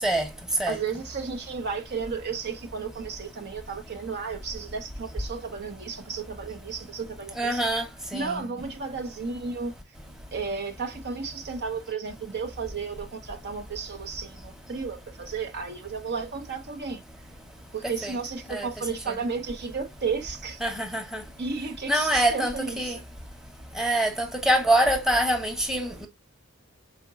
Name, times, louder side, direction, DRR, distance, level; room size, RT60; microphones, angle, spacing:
voice 1, 0.7-7.6 8.1-9.7 10.3-17.0 17.7-20.6 21.4-22.9, right 5 dB, 55° right, 0.7 m, -33 dB
voice 2, 7.4-7.8 8.1-8.4 18.0-18.2 18.5-18.7 19.1-19.2 20.6-21.2 21.9-23.0 23.8-26.1, right 1 dB, 5° right, 1.0 m, -25 dB
5.0 x 3.8 x 2.3 m
head